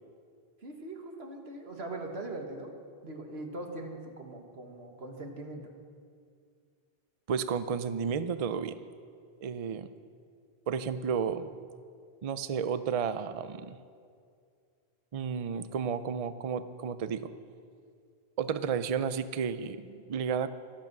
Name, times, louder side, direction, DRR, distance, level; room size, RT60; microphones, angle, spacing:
voice 1, 0.6-2.7 3.0-5.6, right 2 dB, 90° right, 3 dB, 1.9 m, -41 dB
voice 2, 7.3-8.8 9.4-9.9 10.7-11.5 12.2-13.8 15.1-17.3 18.4-20.5, right 7 dB, 45° right, 12 dB, 0.5 m, -32 dB
23.5 x 8.1 x 6.1 m, 2.3 s
omnidirectional pair, 1.0 m